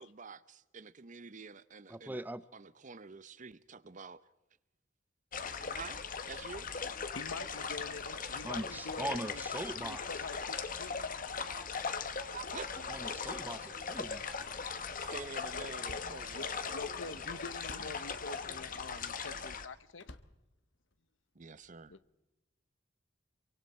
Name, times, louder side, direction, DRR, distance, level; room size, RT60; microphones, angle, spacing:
voice 1, 0.0-2.2 2.5-4.2 5.7-6.7 11.7-12.8 15.0-16.7 17.0-18.0 21.3-21.9, right 4 dB, 40° right, 0.8 m, -48 dB
voice 2, 1.9-2.4 8.4-10.0 12.9-14.2, right 1 dB, 10° right, 0.7 m, -40 dB
sound 1, 5.3-19.7, left 5 dB, 45° left, 1.5 m, -39 dB
voice 3, 7.1-9.4 9.8-10.9 16.3-20.1 21.9-22.0, left 3 dB, 85° left, 1.1 m, -46 dB
Slam, 12.8-12.9 14.2-15.1 15.4-17.0 17.6-18.0 18.8-19.2 19.9-21.0 21.6-21.9, left 2 dB, 65° left, 1.4 m, -55 dB
27.0 x 24.5 x 4.3 m
head